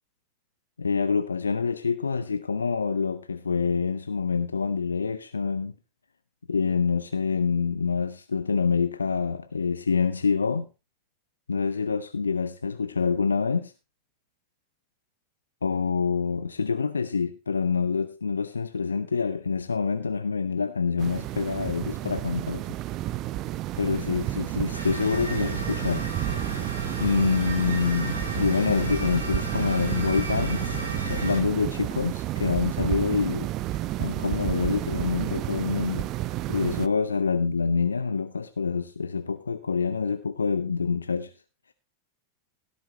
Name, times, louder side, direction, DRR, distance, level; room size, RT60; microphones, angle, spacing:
voice 1, 0.8-5.7 6.5-10.7 11.5-13.7 15.6-22.7 23.8-26.0 27.0-33.5 34.0-36.1 36.5-41.3, left 5 dB, 75° left, 0.6 m, -26 dB
sound 1, 21.0-36.9, right 15 dB, 35° right, 0.6 m, -31 dB
sound 2, 24.7-31.4, right 1 dB, 80° right, 3.0 m, -33 dB
16.5 x 10.5 x 2.9 m
figure-of-eight pair, 90°, 0 cm